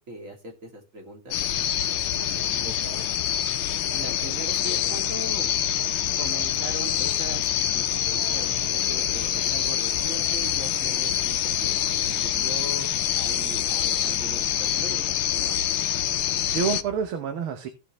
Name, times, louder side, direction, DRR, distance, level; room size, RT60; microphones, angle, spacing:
voice 1, 0.1-1.4 2.3-2.8 3.9-5.5 6.2-7.8 8.1-15.0 15.3-15.6, right 1 dB, 35° right, 1 dB, 2.8 m, -40 dB
sound 1, 1.3-16.8, left 11 dB, 75° left, 1.5 m, -26 dB
sound 2, 1.4-17.1, left 2 dB, 10° left, 4.3 m, -45 dB
voice 2, 2.6-3.1 16.2-17.7, right 6 dB, 75° right, 6 dB, 1.9 m, -29 dB
16.5 x 5.8 x 3.1 m, 0.29 s
omnidirectional pair, 2.4 m